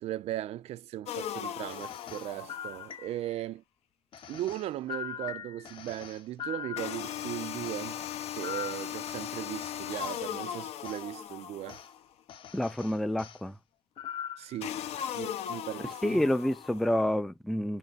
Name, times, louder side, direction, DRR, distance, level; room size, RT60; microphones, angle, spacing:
voice 1, 0.0-3.6 4.3-8.0 8.3-11.8 14.4-14.8 15.1-16.2, right 13 dB, 70° right, 0.4 m, -38 dB
sound 1, 1.1-3.0 6.8-12.0 14.6-17.0, left 10 dB, 70° left, 0.8 m, -38 dB
sound 2, 1.7-3.4 4.1-7.3 7.6-10.2 10.8-11.0 11.7-11.9 12.3-13.4 14.0-14.6, left 9 dB, 50° left, 1.0 m, -42 dB
voice 2, 12.5-13.6 16.0-17.8, left 1 dB, ahead, 0.3 m, -28 dB
5.4 x 2.0 x 4.1 m
cardioid pair, 165°, 11 cm